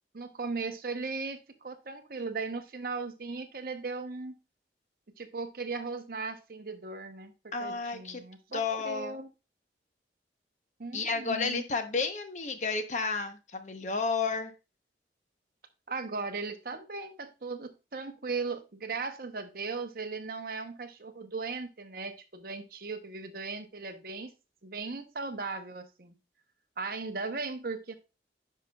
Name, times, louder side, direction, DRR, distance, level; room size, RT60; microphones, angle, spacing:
voice 1, 0.1-4.4 5.2-9.3 10.8-11.6 15.9-24.3 24.6-26.1 26.8-27.9, right 4 dB, 55° right, 8 dB, 0.8 m, -37 dB
voice 2, 7.5-8.2 8.5-9.2 10.9-14.5, left 4 dB, 40° left, 8 dB, 0.8 m, -32 dB
10.0 x 5.7 x 2.3 m, 0.29 s
head